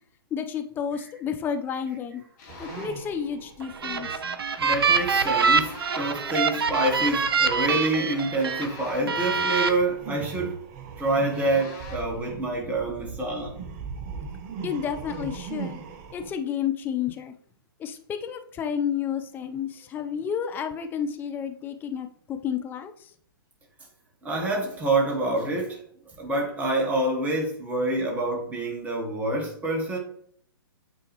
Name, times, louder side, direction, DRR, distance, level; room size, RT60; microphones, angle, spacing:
voice 1, 0.3-2.2 2.6-4.2 14.6-15.8 16.1-17.3 17.8-22.9, left 8 dB, 15° left, 0.6 m, -31 dB
sound 1, 2.4-3.1 5.4-6.2 8.3-9.3 11.3-12.2, left 4 dB, 45° left, 2.5 m, -44 dB
sound 2, 2.5-6.4 6.7-16.3, right 5 dB, 30° right, 0.8 m, -39 dB
sound 3, 3.6-8.7 9.1-9.7, right 5 dB, 70° right, 0.8 m, -24 dB
voice 2, 4.6-10.5 11.0-13.6 24.2-25.8 26.2-30.0, right 2 dB, 10° right, 1.1 m, -27 dB
8.8 x 3.8 x 3.0 m
hypercardioid pair, 130°, 13 cm